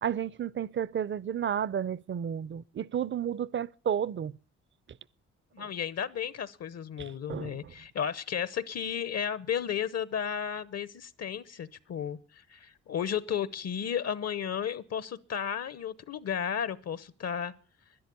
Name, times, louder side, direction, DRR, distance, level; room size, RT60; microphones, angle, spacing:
voice 1, 0.0-4.3 7.0-7.6, right 8 dB, 40° right, 0.6 m, -32 dB
voice 2, 5.5-17.5, left 8 dB, 60° left, 0.9 m, -33 dB
12.5 x 10.5 x 8.3 m
cardioid pair, 85°, 29 cm